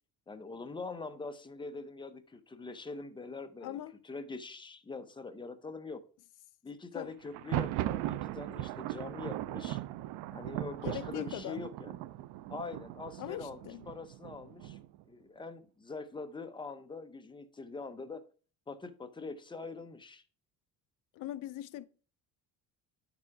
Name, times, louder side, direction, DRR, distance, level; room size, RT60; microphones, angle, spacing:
voice 1, 0.3-3.8 4.0-6.0 6.6-9.8 10.3-12.0 12.5-13.6 13.9-14.8 15.1-18.2 18.7-20.2, left 3 dB, 10° left, 0.6 m, -43 dB
voice 2, 3.6-4.0 6.9-7.1 10.8-11.6 13.2-13.9 21.1-21.9, left 14 dB, 50° left, 0.6 m, -41 dB
Thunder, 7.2-15.0, right 14 dB, 85° right, 0.5 m, -38 dB
9.7 x 4.9 x 4.7 m
cardioid pair, 150°, 39 cm